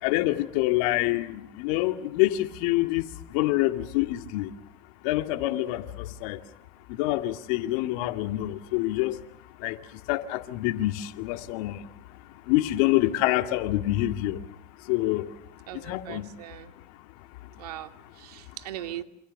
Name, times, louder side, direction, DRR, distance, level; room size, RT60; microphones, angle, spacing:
voice 1, 0.0-4.5 5.0-6.4 6.9-9.2 9.6-9.8 10.1-11.9 12.5-14.4 14.9-15.3 15.7-16.3, left 16 dB, 65° left, 7 dB, 2.3 m, -26 dB
voice 2, 15.7-16.7 17.6-19.0, right 14 dB, 80° right, 8 dB, 2.5 m, -40 dB
28.5 x 26.0 x 6.6 m, 0.78 s
hypercardioid pair, 105°, 20 cm